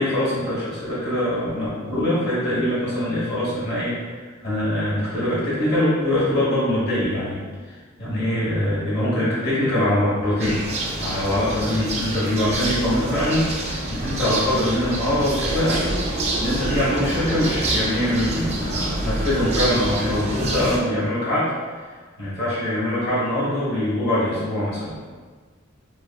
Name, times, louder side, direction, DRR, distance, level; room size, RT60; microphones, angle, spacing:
voice 1, 0.0-7.4 8.0-10.6 11.0-15.8 16.4-21.5 22.2-25.0, left 1 dB, 55° left, -8 dB, 1.2 m, -23 dB
sound 1, 10.4-20.8, right 1 dB, 30° right, 0.4 m, -27 dB
2.8 x 2.5 x 2.3 m, 1.5 s
head